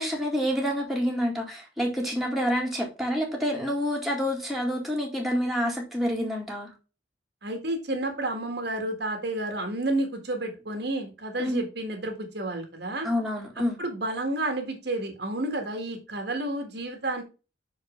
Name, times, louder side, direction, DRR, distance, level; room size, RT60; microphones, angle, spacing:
voice 1, 0.0-6.7 11.4-11.6 13.0-13.8, equal, ahead, -2 dB, 2.1 m, -28 dB
voice 2, 7.4-13.1 13.8-17.2, right 2 dB, 55° right, 4 dB, 1.7 m, -30 dB
6.0 x 5.1 x 3.7 m, 0.30 s
head